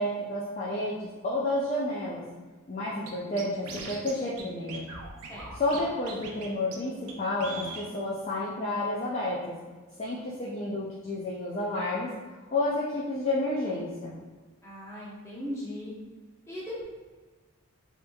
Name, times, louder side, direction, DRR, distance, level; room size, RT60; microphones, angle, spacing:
voice 1, 0.0-2.2 2.7-4.9 5.5-9.6 10.0-12.1 12.5-14.1, left 1 dB, 30° left, -6 dB, 0.3 m, -30 dB
Scratching (performance technique), 3.1-3.2 3.4-4.1 4.4-4.5 4.7-5.8 6.1-6.5 6.7-6.8 7.1-7.2 7.4-7.9, right 3 dB, 85° right, 0.5 m, -39 dB
voice 2, 14.6-15.9 16.5-16.8, left 1 dB, 15° left, -7 dB, 0.7 m, -38 dB
3.3 x 2.9 x 2.2 m, 1.4 s
head